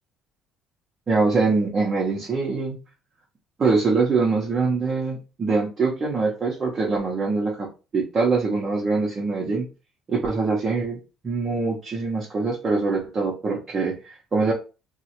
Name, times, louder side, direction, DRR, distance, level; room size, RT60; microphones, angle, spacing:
voice 1, 1.1-2.8 3.6-7.7 7.9-9.7 10.1-11.0 11.2-14.5, right 4 dB, 25° right, -4 dB, 0.6 m, -23 dB
3.6 x 2.0 x 2.8 m, 0.31 s
cardioid pair, 175°, 0 cm